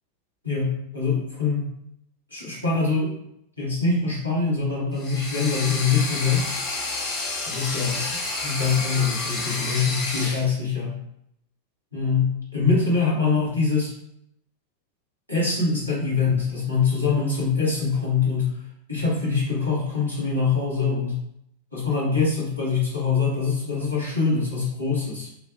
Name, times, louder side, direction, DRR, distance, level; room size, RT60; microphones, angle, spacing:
voice 1, 0.4-1.7 2.3-3.1 3.6-6.4 7.4-8.1 8.4-11.0 11.9-13.9 15.3-18.6 18.9-21.2 21.7-25.3, left 4 dB, 85° left, -6 dB, 1.3 m, -24 dB
sound 1, 4.9-10.5, left 2 dB, 40° left, 1.1 m, -30 dB
6.5 x 2.2 x 2.3 m, 0.75 s
figure-of-eight pair, 90°, 0 cm